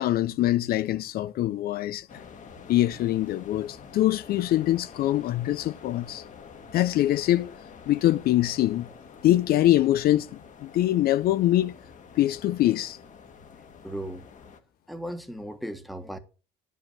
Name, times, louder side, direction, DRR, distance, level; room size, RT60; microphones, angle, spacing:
voice 1, 0.0-2.1 2.7-6.2 6.7-7.5 7.9-8.9 9.2-11.7 12.2-13.0, left 14 dB, 65° left, 0.5 m, -24 dB
sound 1, 2.1-14.6, left 6 dB, 45° left, 1.5 m, -48 dB
voice 2, 13.8-14.3 14.9-16.2, equal, ahead, 1.3 m, -36 dB
10.5 x 5.4 x 7.3 m
cardioid pair, 110°, 17 cm